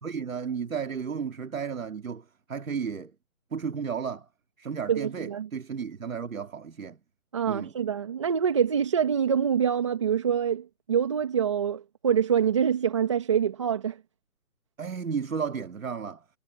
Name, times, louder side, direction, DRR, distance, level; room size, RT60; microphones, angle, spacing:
voice 1, 0.0-3.1 3.5-4.3 4.6-7.0 7.4-7.7 14.8-16.2, right 6 dB, 65° right, 2.7 m, -33 dB
voice 2, 4.9-5.5 7.3-14.0, right 8 dB, 20° right, 1.8 m, -25 dB
hypercardioid pair, 180°, 44 cm